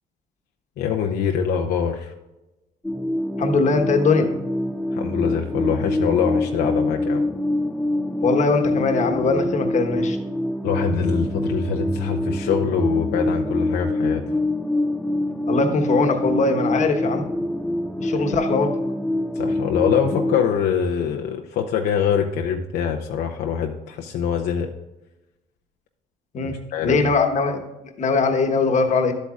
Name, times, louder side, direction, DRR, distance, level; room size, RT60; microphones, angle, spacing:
voice 1, 0.8-2.1 4.9-7.2 10.6-14.2 18.1-18.2 19.3-24.7 26.7-27.1, left 7 dB, 75° left, 2 dB, 0.7 m, -24 dB
sound 1, 2.8-20.4, left 1 dB, 5° left, 0.5 m, -25 dB
voice 2, 3.4-4.3 8.2-10.2 15.5-17.2 18.0-18.7 26.3-26.6 26.8-27.6 28.0-29.1, left 4 dB, 45° left, 4 dB, 1.2 m, -21 dB
12.0 x 8.2 x 2.4 m, 1.0 s
cardioid pair, 110°, 17 cm